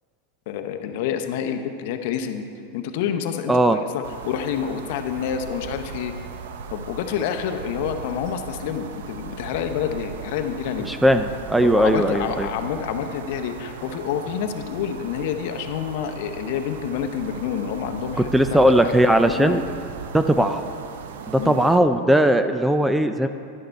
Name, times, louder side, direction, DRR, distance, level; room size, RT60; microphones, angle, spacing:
voice 1, 0.5-2.4 2.7-6.1 6.7-10.9 11.6-19.6 20.3-20.5 21.4-21.6, left 8 dB, 60° left, 6 dB, 0.7 m, -28 dB
voice 2, 3.5-3.8 10.9-12.5 18.3-19.6 20.1-20.6 21.3-23.3, right 1 dB, 5° right, 9 dB, 0.3 m, -18 dB
sound 1, 4.0-21.8, right 6 dB, 80° right, 0.6 m, -37 dB
11.0 x 6.5 x 4.6 m, 2.4 s
supercardioid pair, 140°, 0 cm